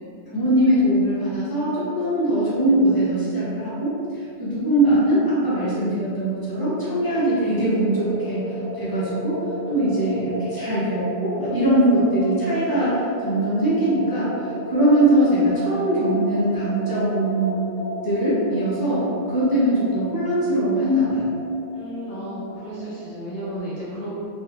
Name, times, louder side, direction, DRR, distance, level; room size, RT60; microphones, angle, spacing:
voice 1, 0.3-3.9 4.4-8.5 8.8-9.4 9.7-14.3 14.7-17.6 18.0-21.3, right 1 dB, 20° left, -10 dB, 0.6 m, -21 dB
sound 1, 6.7-23.6, right 1 dB, 60° right, 0.9 m, -34 dB
voice 2, 21.7-24.1, equal, 65° left, -10 dB, 0.3 m, -33 dB
3.0 x 2.6 x 2.4 m, 2.2 s
omnidirectional pair, 1.4 m